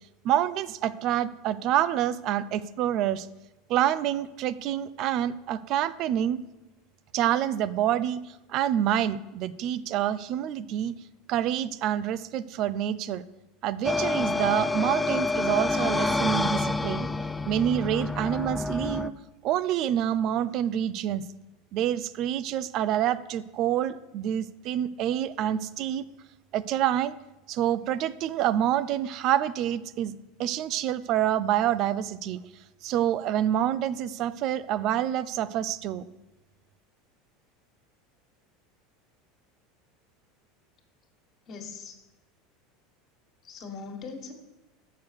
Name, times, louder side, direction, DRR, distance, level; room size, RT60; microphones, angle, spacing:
voice 1, 0.2-3.3 3.7-6.4 7.1-10.9 11.3-13.2 13.6-17.1 17.4-19.1 19.4-21.2 21.7-26.0 26.5-27.1 27.5-30.1 30.4-32.4 32.8-36.0, right 11 dB, 55° right, 15 dB, 0.4 m, -27 dB
sound 1, 13.8-19.1, left 3 dB, 10° left, 0.4 m, -28 dB
voice 2, 41.4-42.0 43.4-44.3, left 5 dB, 45° left, 3 dB, 1.8 m, -40 dB
6.9 x 6.5 x 6.1 m, 1.1 s
hypercardioid pair, 85°, 0 cm